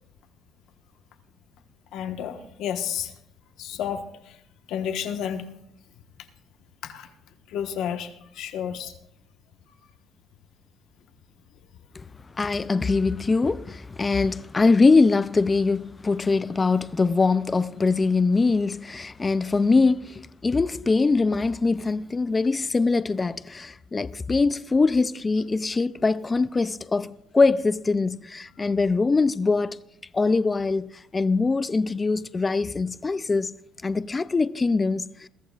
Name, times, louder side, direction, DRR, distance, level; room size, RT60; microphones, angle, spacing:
voice 1, 1.9-3.1 3.6-4.4 4.7-5.4 6.8-7.1 7.5-8.9, left 9 dB, 70° left, 1.2 m, -31 dB
voice 2, 12.4-29.8 30.1-33.5 33.8-35.3, left 3 dB, 20° left, 0.4 m, -23 dB
22.0 x 14.0 x 2.4 m
cardioid pair, 145°, 0 cm